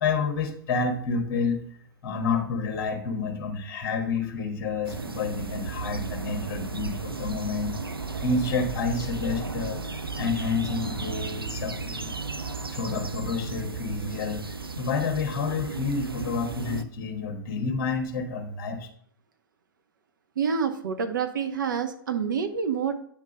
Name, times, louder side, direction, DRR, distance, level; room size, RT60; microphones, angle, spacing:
voice 1, 0.0-1.6 2.0-7.8 8.2-12.1 12.7-14.5 14.8-18.9, left 4 dB, 40° left, 4 dB, 1.3 m, -29 dB
sound 1, 4.8-16.8, right 4 dB, 85° right, 0.5 m, -34 dB
voice 2, 20.4-22.9, right 6 dB, 60° right, 7 dB, 0.9 m, -27 dB
8.9 x 3.6 x 5.0 m, 0.63 s
figure-of-eight pair, 100°, 12 cm